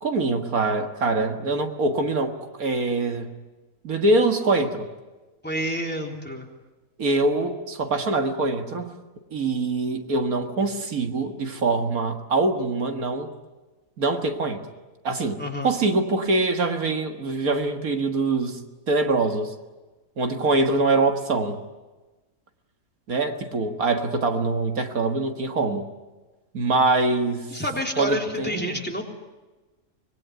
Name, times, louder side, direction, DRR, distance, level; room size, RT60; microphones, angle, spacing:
voice 1, 0.0-3.3 3.8-4.9 7.0-8.9 9.3-13.3 14.0-14.6 15.0-15.4 15.6-18.6 18.9-19.5 20.2-21.6 23.1-25.8 26.5-27.5 28.0-28.8, right 3 dB, 80° right, 5 dB, 2.2 m, -24 dB
voice 2, 5.4-6.5 15.4-15.7 27.5-29.0, equal, 5° left, 1 dB, 3.4 m, -29 dB
25.5 x 21.0 x 9.4 m, 1.2 s
omnidirectional pair, 1.5 m